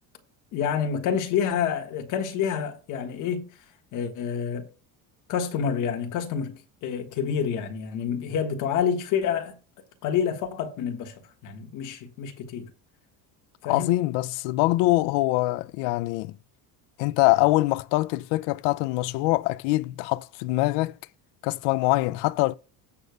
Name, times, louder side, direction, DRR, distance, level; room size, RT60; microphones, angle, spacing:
voice 1, 0.5-3.5 3.9-4.7 5.3-9.6 10.0-11.1 11.4-12.7 13.6-14.0, left 7 dB, 50° left, 1.6 m, -28 dB
voice 2, 13.7-16.4 17.0-21.0 21.4-22.5, left 20 dB, 85° left, 0.5 m, -24 dB
17.5 x 6.6 x 2.3 m
cardioid pair, 175°, 41 cm